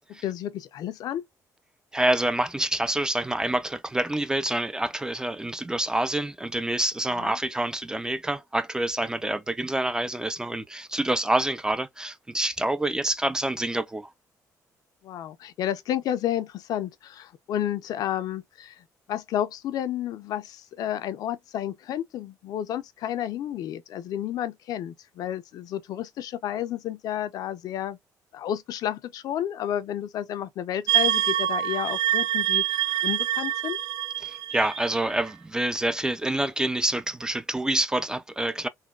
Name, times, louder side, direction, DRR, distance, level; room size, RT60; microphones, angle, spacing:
voice 1, 0.1-1.2 7.2-7.4 15.0-18.7 19.1-28.0 28.3-33.8, left 11 dB, 70° left, 0.5 m, -31 dB
voice 2, 1.9-14.1 34.2-38.7, right 1 dB, 10° right, 0.3 m, -27 dB
sound 1, 30.9-35.3, right 12 dB, 80° right, 0.5 m, -26 dB
4.0 x 2.2 x 2.2 m
cardioid pair, 120°, 7 cm